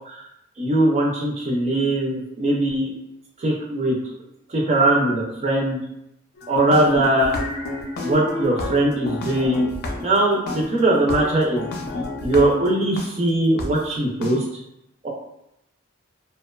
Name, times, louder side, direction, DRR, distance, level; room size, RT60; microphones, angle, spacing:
voice 1, 0.6-2.9 3.4-4.0 4.5-5.8 6.5-7.3 8.0-9.7 10.0-11.7 12.2-14.4 15.0-15.1, right 1 dB, 35° right, -2 dB, 0.4 m, -20 dB
sound 1, 6.4-13.1 13.6-13.7 14.2-14.3, left 2 dB, 50° left, 0.4 m, -30 dB
2.8 x 2.2 x 2.2 m, 0.83 s
head